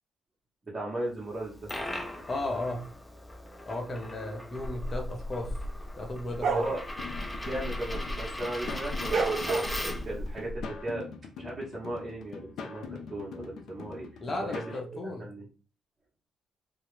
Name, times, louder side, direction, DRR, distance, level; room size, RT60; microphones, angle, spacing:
voice 1, 0.7-1.7 6.5-6.8 7.4-11.1 11.4-14.1 14.4-15.5, right 1 dB, 25° right, -6 dB, 0.8 m, -37 dB
Coin (dropping), 1.3-10.2, left 1 dB, 10° left, 0.4 m, -40 dB
voice 2, 2.3-2.8 3.7-5.5 6.0-6.7 14.2-15.3, left 2 dB, 35° left, 2 dB, 0.8 m, -35 dB
sound 1, 4.6-8.3 8.6-10.6, right 3 dB, 60° right, 0.4 m, -32 dB
sound 2, 7.0-14.8, left 5 dB, 75° left, 0.4 m, -43 dB
2.3 x 2.0 x 3.0 m, 0.36 s
cardioid pair, 90°, 0 cm